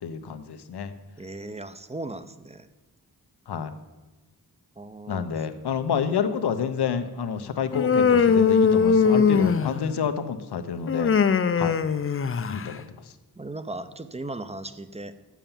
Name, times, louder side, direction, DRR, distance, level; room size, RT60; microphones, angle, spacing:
voice 1, 0.0-0.9 3.5-3.7 5.1-11.1 11.6-11.8 12.5-12.8, left 7 dB, 90° left, 9 dB, 0.8 m, -29 dB
voice 2, 1.2-2.7 4.8-5.3 9.0-10.0 13.4-15.2, right 2 dB, 15° right, 11 dB, 0.6 m, -37 dB
Human voice, 7.7-10.0 10.9-12.7, left 6 dB, 35° left, 0.5 m, -21 dB
7.3 x 6.8 x 7.2 m, 1.2 s
wide cardioid pair, 75°, 38 cm